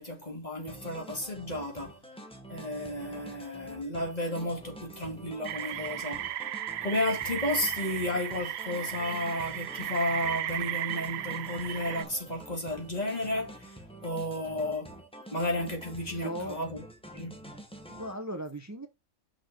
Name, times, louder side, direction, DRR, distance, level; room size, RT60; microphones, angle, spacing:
voice 1, 0.0-2.0 2.5-6.3 6.8-14.9 15.3-16.9 17.1-17.4, left 1 dB, 35° left, 2.1 m, -33 dB
sound 1, 0.7-18.1, equal, 5° left, 1.3 m, -47 dB
sound 2, 5.4-12.0, right 11 dB, 65° right, 0.8 m, -35 dB
voice 2, 16.0-16.6 17.9-18.9, right 1 dB, 15° right, 0.8 m, -37 dB
6.2 x 4.5 x 4.5 m
omnidirectional pair, 1.3 m